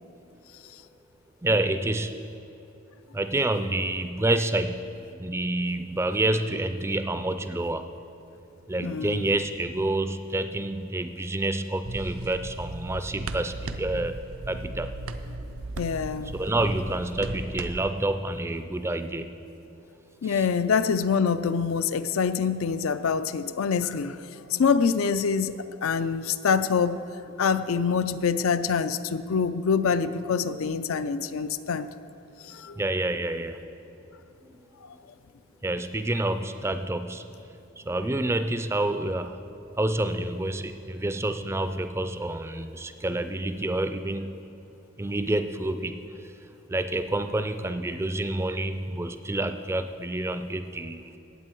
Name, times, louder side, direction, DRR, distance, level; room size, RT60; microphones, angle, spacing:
voice 1, 1.4-2.2 3.1-8.0 8.7-14.9 16.3-19.4 20.2-20.5 32.8-33.6 34.4-34.5 35.6-37.3 37.8-39.4 39.8-44.3 45.0-46.3 46.7-51.1, right 2 dB, 10° right, 10 dB, 0.4 m, -28 dB
voice 2, 8.8-9.4 15.8-16.3 20.2-24.2 24.5-27.0 27.4-31.9 32.4-32.8, left 6 dB, 80° left, 13 dB, 0.5 m, -25 dB
sound 1, 11.8-17.9, right 2 dB, 85° right, 0.6 m, -36 dB
16.5 x 8.2 x 4.5 m, 2.8 s
head